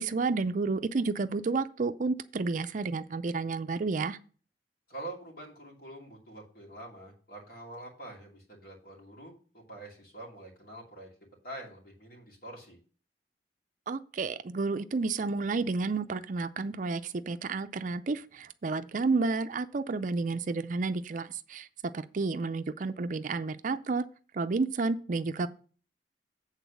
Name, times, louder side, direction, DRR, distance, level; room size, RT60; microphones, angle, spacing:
voice 1, 0.0-4.2 13.9-21.7 21.9-24.1 24.3-25.5, right 3 dB, 45° right, 0.4 m, -31 dB
voice 2, 4.9-11.1 11.4-12.8, right 1 dB, 55° left, 2.5 m, -45 dB
8.2 x 3.9 x 6.9 m
head